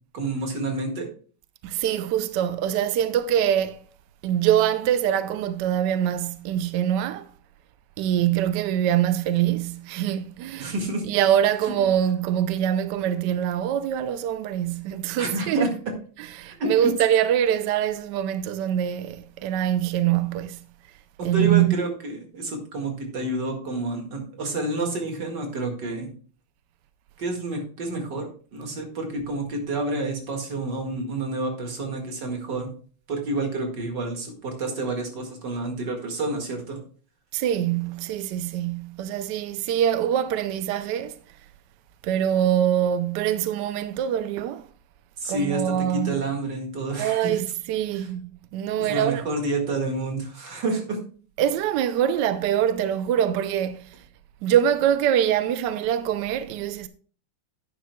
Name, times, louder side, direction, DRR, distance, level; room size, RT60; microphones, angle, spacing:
voice 1, 0.1-1.1 10.6-11.0 15.2-15.7 16.6-16.9 21.2-26.1 27.2-32.7 33.1-36.8 45.2-45.7 46.0-47.4 47.9-48.1 48.8-51.0, right 2 dB, 55° right, 2.5 m, -29 dB
voice 2, 1.6-3.8 4.2-7.3 8.0-10.7 11.1-15.7 16.4-20.6 21.2-21.8 37.3-41.2 42.0-44.7 45.3-46.1 47.0-49.2 51.4-53.9 54.4-56.9, right 10 dB, 75° right, 1.0 m, -24 dB
10.5 x 9.4 x 2.2 m
omnidirectional pair, 2.3 m